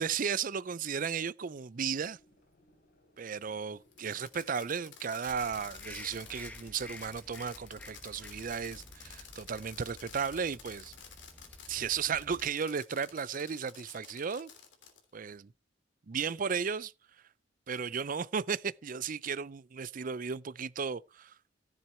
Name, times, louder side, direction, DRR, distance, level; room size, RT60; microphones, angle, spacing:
voice 1, 0.0-2.2 3.2-10.9 11.7-14.5 15.1-15.5 16.1-16.9 17.7-21.4, right 6 dB, 45° right, 0.5 m, -35 dB
sound 1, 1.7-9.0, left 1 dB, 50° left, 4.1 m, -68 dB
Fireworks, 3.9-11.8 12.2-15.0, left 7 dB, 65° left, 3.1 m, -51 dB
sound 2, 5.3-12.5, left 1 dB, 5° left, 1.0 m, -51 dB
14.5 x 7.7 x 4.4 m
head